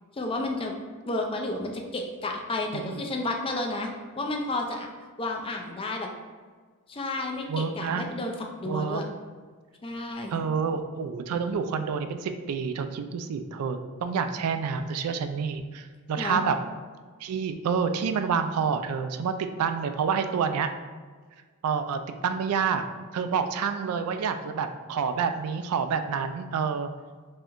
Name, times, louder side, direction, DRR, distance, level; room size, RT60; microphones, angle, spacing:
voice 1, 0.1-0.8 1.1-4.9 5.2-6.1 6.9-8.3 8.6-9.1 9.8-10.4 16.2-16.4, left 2 dB, 25° left, 2 dB, 0.4 m, -31 dB
voice 2, 7.5-8.0 8.7-9.0 10.3-16.6 17.2-20.7 21.6-22.8 23.1-26.9, right 6 dB, 90° right, 8 dB, 0.3 m, -28 dB
4.2 x 2.8 x 2.5 m, 1.5 s
head